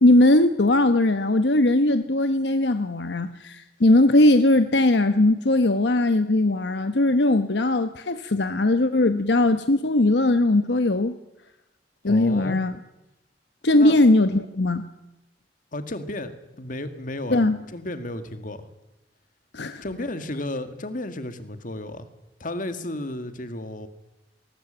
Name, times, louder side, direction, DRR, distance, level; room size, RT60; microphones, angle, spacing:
voice 1, 0.0-11.2 12.0-12.7 13.6-14.9 17.3-17.6 19.5-19.8, left 2 dB, 75° left, 10 dB, 1.0 m, -19 dB
voice 2, 12.1-12.6 13.7-14.0 15.7-18.7 19.8-22.1 22.4-23.9, left 1 dB, 50° left, 10 dB, 1.9 m, -33 dB
19.5 x 19.5 x 9.0 m, 0.97 s
head